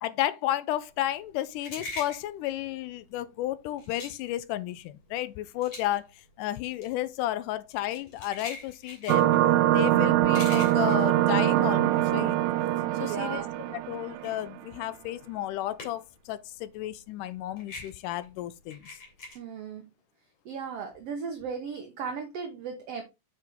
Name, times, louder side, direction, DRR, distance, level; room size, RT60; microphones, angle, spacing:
voice 1, 0.0-9.3 9.7-12.4 13.0-13.4 13.7-18.9, left 14 dB, 80° left, 1.9 m, -32 dB
sound 1, 0.9-12.5 12.8-16.3 16.5-19.4, left 2 dB, 45° left, 3.9 m, -44 dB
sound 2, 9.1-14.3, right 14 dB, 90° right, 1.6 m, -23 dB
voice 2, 12.8-13.5 19.3-19.9 20.4-23.0, right 6 dB, 65° right, 1.7 m, -36 dB
7.6 x 5.8 x 3.6 m
omnidirectional pair, 4.0 m